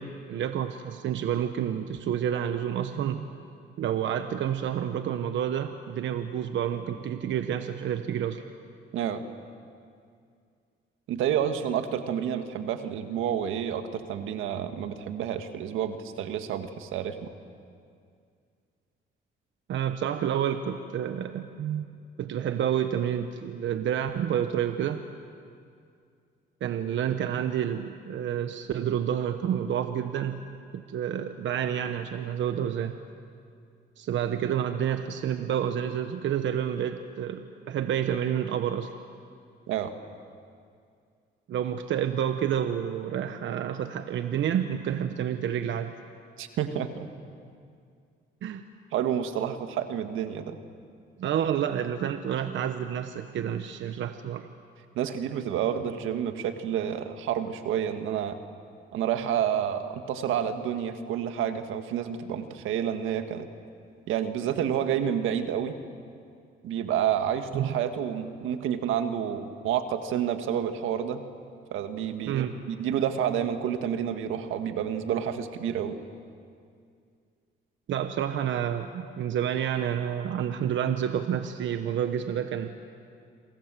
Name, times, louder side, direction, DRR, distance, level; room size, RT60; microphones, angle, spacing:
voice 1, 0.0-3.3 3.8-8.4 19.7-21.9 22.2-25.0 26.6-30.4 30.7-32.9 34.0-38.9 41.5-45.9 48.4-48.6 51.2-54.5 67.5-67.7 72.3-72.6 77.9-82.7, right 9 dB, 70° right, 8 dB, 1.1 m, -29 dB
voice 2, 8.9-9.2 11.1-17.3 39.7-39.9 46.4-47.1 48.9-50.6 54.9-58.4 58.9-63.5 64.1-65.8 66.6-71.2 71.7-76.0, right 9 dB, 90° right, 8 dB, 1.7 m, -29 dB
28.5 x 23.5 x 7.6 m, 2.3 s
cardioid pair, 90°, 20 cm